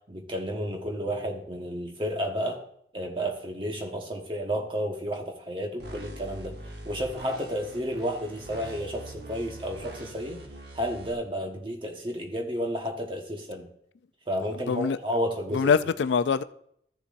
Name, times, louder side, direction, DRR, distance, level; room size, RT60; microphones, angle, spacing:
voice 1, 0.1-2.6 2.9-6.6 6.8-10.4 10.7-13.7 14.3-15.7, equal, 25° right, 1.2 m, -31 dB
sound 1, 5.8-11.1, right 1 dB, 70° right, 1.1 m, -43 dB
voice 2, 14.5-15.0 15.5-16.4, left 6 dB, 75° left, 0.4 m, -24 dB
14.0 x 6.9 x 2.5 m
head